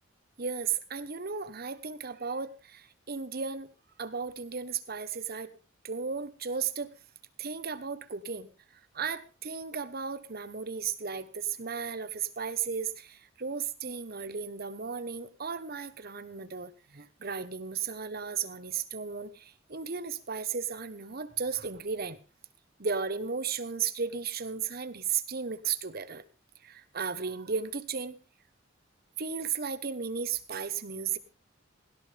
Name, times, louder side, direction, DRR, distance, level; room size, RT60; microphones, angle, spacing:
voice 1, 0.4-3.7 4.0-5.5 5.8-6.9 7.4-8.5 8.9-22.2 22.8-26.2 26.6-28.2 29.2-31.2, right 6 dB, 50° right, 13 dB, 1.1 m, -35 dB
17.0 x 17.0 x 3.5 m, 0.32 s
head